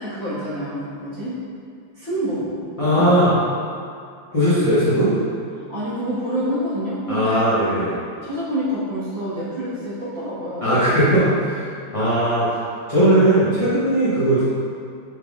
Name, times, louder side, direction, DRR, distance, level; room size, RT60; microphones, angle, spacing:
voice 1, 0.0-1.4 1.9-2.5 2.8-3.1 4.5-4.7 5.5-7.4 8.2-10.8, equal, 35° right, -13 dB, 1.1 m, -27 dB
voice 2, 2.8-3.3 4.3-5.1 7.1-7.9 10.6-11.7 11.9-12.6 12.9-14.4, right 1 dB, 45° left, -13 dB, 0.4 m, -18 dB
4.7 x 3.4 x 2.3 m, 2.3 s
omnidirectional pair, 2.1 m